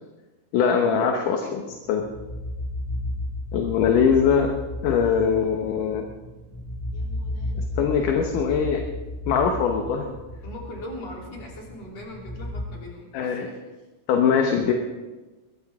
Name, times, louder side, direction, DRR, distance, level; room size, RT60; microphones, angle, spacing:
voice 1, 0.5-1.6 1.9-2.1 3.5-4.5 4.8-6.1 7.8-8.8 9.3-10.1 13.1-13.5 14.1-14.7, left 7 dB, 75° left, 3 dB, 2.6 m, -21 dB
sound 1, 1.6-12.7, left 1 dB, 10° left, 1.8 m, -34 dB
voice 2, 5.0-5.5 6.9-8.3 10.4-13.6, left 1 dB, 50° left, -2 dB, 4.4 m, -41 dB
21.5 x 15.5 x 3.6 m, 1.2 s
omnidirectional pair, 3.8 m